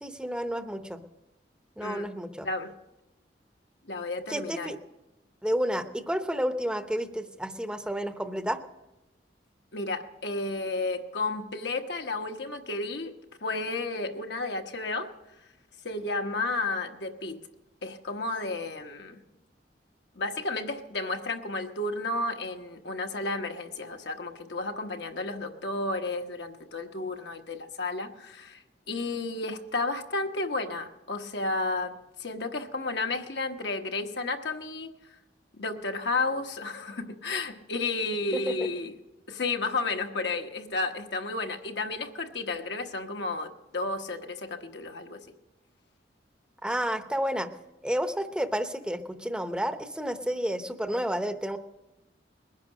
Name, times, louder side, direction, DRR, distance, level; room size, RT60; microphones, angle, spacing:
voice 1, 0.0-1.0 1.8-2.5 4.3-4.8 5.4-8.6 38.3-38.7 46.6-47.5 47.8-51.6, equal, 5° right, 8 dB, 0.7 m, -30 dB
voice 2, 1.8-2.1 2.4-2.7 3.8-4.7 9.7-15.1 15.8-17.4 17.8-19.2 20.1-28.6 28.9-34.9 35.5-38.9 39.3-45.3, left 3 dB, 70° left, 5 dB, 1.2 m, -32 dB
21.0 x 10.5 x 6.3 m, 0.99 s
head